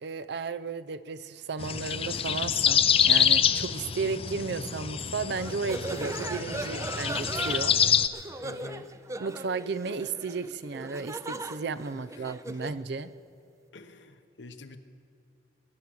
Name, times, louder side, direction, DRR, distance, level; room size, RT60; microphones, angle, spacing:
voice 1, 0.0-7.8 9.2-13.1, right 4 dB, 65° right, 13 dB, 0.6 m, -34 dB
sound 1, 1.6-8.1, left 8 dB, 35° left, 0.5 m, -26 dB
sound 2, 5.4-12.8, right 2 dB, 15° right, 0.5 m, -38 dB
voice 2, 8.4-8.8 13.7-14.8, left 3 dB, 75° left, 9 dB, 0.9 m, -46 dB
22.0 x 9.8 x 6.3 m, 2.6 s
head